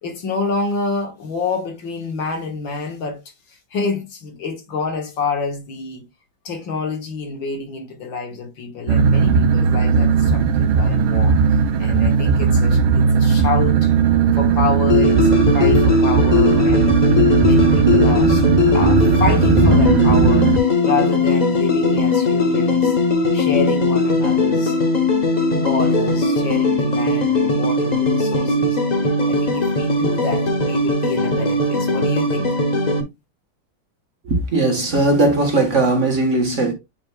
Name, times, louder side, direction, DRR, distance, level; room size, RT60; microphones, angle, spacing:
voice 1, 0.0-3.2 3.5-6.1 6.4-11.3 11.8-13.9 14.3-17.0 17.4-18.5 18.7-23.0 23.3-24.8 25.5-28.8 29.2-32.5, left 4 dB, 70° left, 2.2 m, -27 dB
sound 1, 8.9-20.6, right 5 dB, 80° right, 1.5 m, -16 dB
sound 2, 14.9-33.0, left 3 dB, 35° left, 0.7 m, -19 dB
voice 2, 34.2-36.7, right 2 dB, 40° right, 1.6 m, -18 dB
8.6 x 5.0 x 2.3 m
omnidirectional pair, 2.2 m